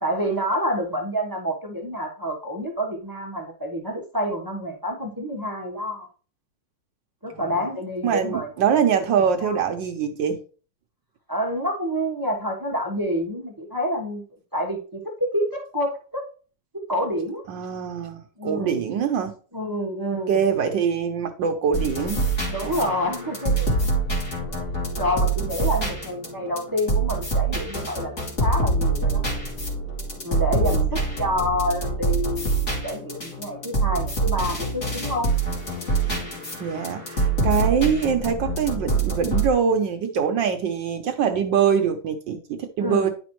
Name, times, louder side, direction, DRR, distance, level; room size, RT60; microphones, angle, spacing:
voice 1, 0.0-6.1 7.2-8.5 9.4-9.6 11.3-14.2 14.5-16.2 16.7-17.4 18.4-18.8 19.5-20.4 22.5-23.9 24.5-24.7 25.0-28.1 28.4-29.2 30.2-35.3 42.8-43.1, equal, 15° right, 0.7 m, -28 dB
voice 2, 7.3-7.7 8.0-10.4 17.5-19.3 20.3-22.2 22.6-22.9 30.6-30.8 36.6-43.1, right 7 dB, 70° right, 1.4 m, -24 dB
sound 1, 21.7-39.5, right 3 dB, 35° left, 2.3 m, -25 dB
9.9 x 5.1 x 3.1 m
omnidirectional pair, 2.2 m